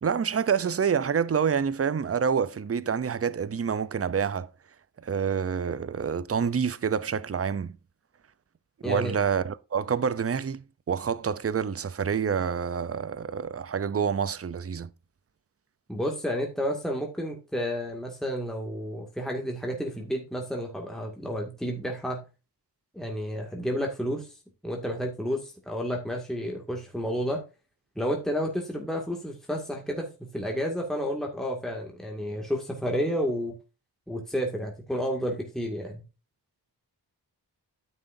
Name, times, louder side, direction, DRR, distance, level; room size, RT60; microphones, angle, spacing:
voice 1, 0.0-4.5 5.0-7.8 8.8-14.9, right 7 dB, 35° right, 0.6 m, -27 dB
voice 2, 8.8-9.2 15.9-22.2 22.9-24.3 24.6-27.4 28.0-33.6 34.1-36.0, equal, ahead, 2.1 m, -31 dB
9.9 x 7.4 x 2.7 m
wide cardioid pair, 65°, 43 cm